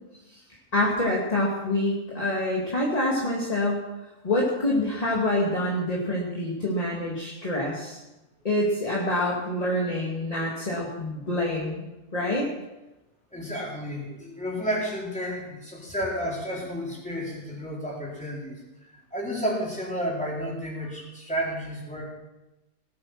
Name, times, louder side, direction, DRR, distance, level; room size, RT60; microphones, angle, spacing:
voice 1, 0.7-3.8 4.2-8.0 8.4-11.8 12.1-12.5, left 1 dB, 25° left, -4 dB, 2.3 m, -26 dB
voice 2, 13.3-18.6 19.1-22.1, equal, 5° left, -5 dB, 4.4 m, -31 dB
18.5 x 8.9 x 6.0 m, 1.0 s
omnidirectional pair, 1.6 m